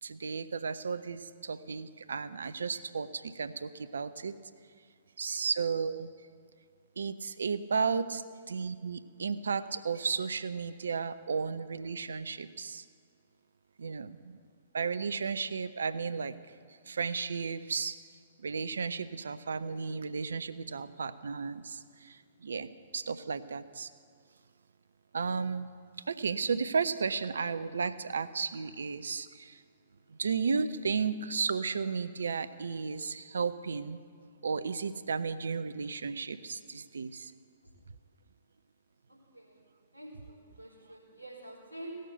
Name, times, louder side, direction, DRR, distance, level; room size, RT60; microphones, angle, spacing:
voice 1, 0.0-4.3 5.2-6.1 7.0-12.8 13.8-14.4 14.7-16.3 16.9-18.0 18.4-23.9 25.1-25.7 26.1-29.6 30.1-34.0 34.4-37.3, right 5 dB, 70° right, 13 dB, 0.6 m, -34 dB
voice 2, 39.1-39.6 39.9-42.0, right 1 dB, 90° left, -4 dB, 3.5 m, -47 dB
17.0 x 6.5 x 7.9 m, 2.1 s
figure-of-eight pair, 115°, 0 cm